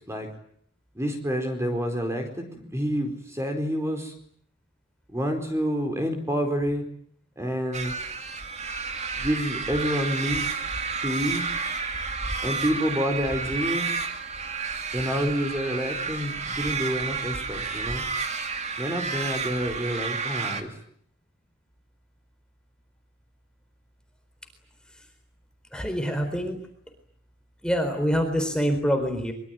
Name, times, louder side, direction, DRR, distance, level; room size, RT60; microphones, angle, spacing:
voice 1, 0.9-4.1 5.1-6.8 7.4-7.9 9.1-10.7 11.0-11.4 12.4-13.9 14.9-18.0 18.8-20.7, equal, 15° right, 5 dB, 4.4 m, -28 dB
sound 1, 7.7-20.6, right 4 dB, 35° right, 2.4 m, -31 dB
voice 2, 25.7-26.6 27.6-29.3, equal, 5° left, 5 dB, 4.1 m, -25 dB
25.0 x 23.5 x 9.3 m, 0.64 s
head